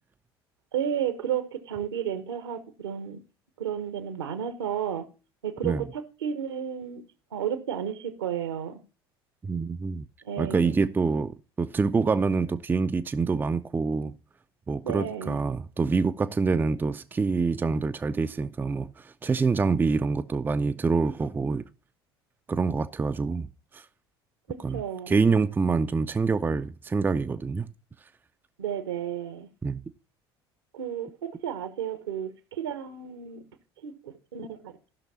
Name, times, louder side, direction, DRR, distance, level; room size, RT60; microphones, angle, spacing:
voice 1, 0.7-3.2 3.6-5.1 5.4-7.0 7.3-8.8 10.2-10.7 14.8-15.4 24.5-25.1 28.6-29.5 30.7-33.4 33.8-34.7, right 9 dB, 70° right, 1.2 m, -32 dB
voice 2, 9.4-10.1 10.4-14.2 14.7-21.7 22.5-23.5 23.7-23.8 24.6-27.7 29.6-29.8, right 4 dB, 15° right, 0.5 m, -26 dB
14.5 x 6.0 x 4.2 m
figure-of-eight pair, 65°, 13 cm